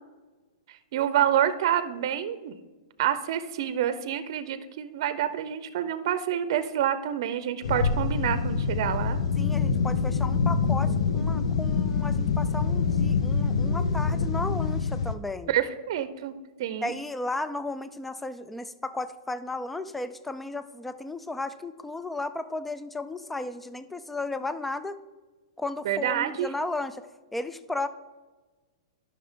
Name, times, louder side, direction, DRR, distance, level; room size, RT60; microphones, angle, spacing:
voice 1, 0.7-2.6 3.0-9.2 15.5-16.3 16.6-16.9 25.8-26.5, right 10 dB, 55° right, 13 dB, 0.6 m, -27 dB
sound 1, 7.6-15.1, left 5 dB, 75° left, 0.6 m, -25 dB
voice 2, 9.4-15.5 16.8-25.0 25.6-27.1 27.3-27.9, left 2 dB, 5° left, 12 dB, 0.3 m, -34 dB
12.0 x 5.8 x 3.7 m, 1.3 s
hypercardioid pair, 150°, 3 cm